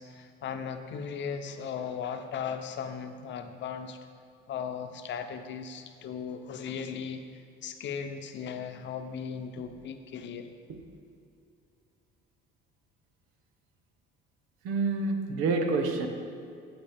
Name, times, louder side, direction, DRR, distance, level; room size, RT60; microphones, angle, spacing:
voice 1, 0.0-4.0 4.5-10.5, left 7 dB, 60° left, 7 dB, 0.8 m, -37 dB
voice 2, 14.6-16.1, right 3 dB, 80° right, 5 dB, 1.0 m, -28 dB
14.5 x 6.1 x 3.5 m, 2.5 s
supercardioid pair, 75°, 21 cm